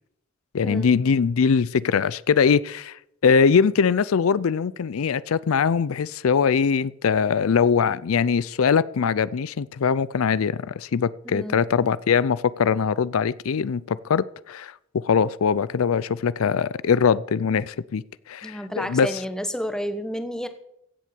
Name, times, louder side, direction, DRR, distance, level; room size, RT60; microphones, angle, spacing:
voice 1, 0.5-3.0 3.2-14.7 15.0-18.0 18.3-19.2, left 6 dB, 90° left, 0.5 m, -22 dB
voice 2, 11.2-11.6 18.4-20.5, equal, 5° left, 1.1 m, -30 dB
16.0 x 7.5 x 6.8 m
head